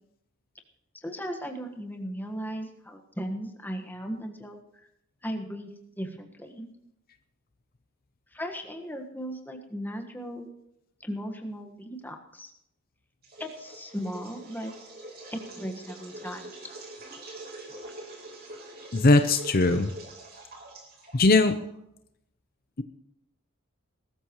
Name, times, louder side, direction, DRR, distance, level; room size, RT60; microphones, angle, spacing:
voice 1, 1.0-4.9 5.2-6.7 8.3-10.5 11.0-12.5 13.4-14.7 15.3-16.5, equal, 10° left, 4 dB, 1.4 m, -37 dB
sound 1, 13.2-21.8, right 2 dB, 45° right, 3.8 m, -44 dB
voice 2, 18.9-19.9 21.1-21.5, left 2 dB, 45° left, 8 dB, 0.7 m, -20 dB
20.5 x 13.5 x 3.1 m, 0.80 s
head